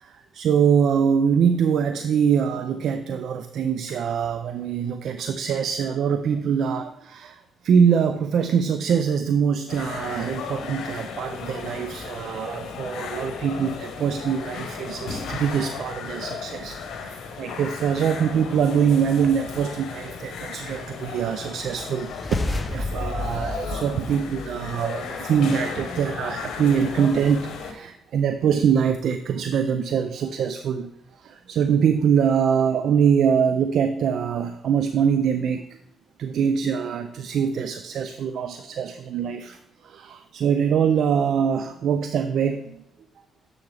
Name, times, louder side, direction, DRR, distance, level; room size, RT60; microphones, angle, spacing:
voice 1, 0.0-30.9 31.2-35.6 36.2-39.6 39.8-42.8, right 7 dB, 70° right, 9 dB, 0.4 m, -23 dB
sound 1, 9.7-27.7, left 5 dB, 80° left, 1.0 m, -35 dB
sound 2, 22.0-24.8, left 2 dB, 20° left, 0.6 m, -31 dB
6.9 x 6.8 x 3.3 m, 0.85 s
cardioid pair, 90°, 0 cm